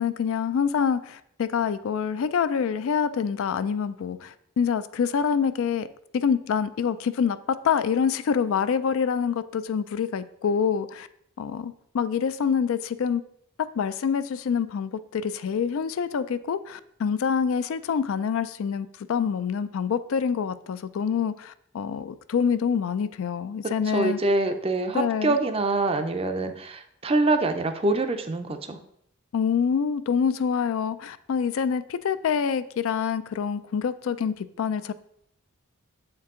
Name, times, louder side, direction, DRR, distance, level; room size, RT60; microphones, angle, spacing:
voice 1, 0.0-5.9 6.1-11.1 11.4-13.2 13.6-24.2 24.9-25.4 29.3-34.9, left 6 dB, 65° left, 13 dB, 0.3 m, -26 dB
voice 2, 23.9-28.8, right 2 dB, 25° right, 8 dB, 0.4 m, -25 dB
7.3 x 4.6 x 3.6 m, 0.72 s
head